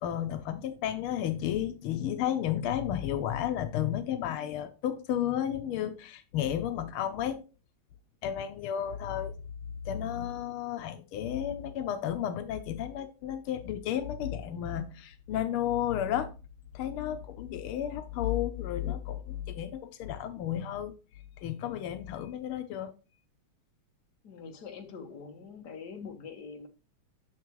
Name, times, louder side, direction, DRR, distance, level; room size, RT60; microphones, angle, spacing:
voice 1, 0.0-7.4 8.2-9.3 9.8-16.3 16.7-20.9 21.4-22.9, left 10 dB, 85° left, 1.6 m, -32 dB
voice 2, 24.2-26.7, left 5 dB, 55° left, 1.7 m, -44 dB
9.4 x 6.6 x 3.1 m
omnidirectional pair, 2.3 m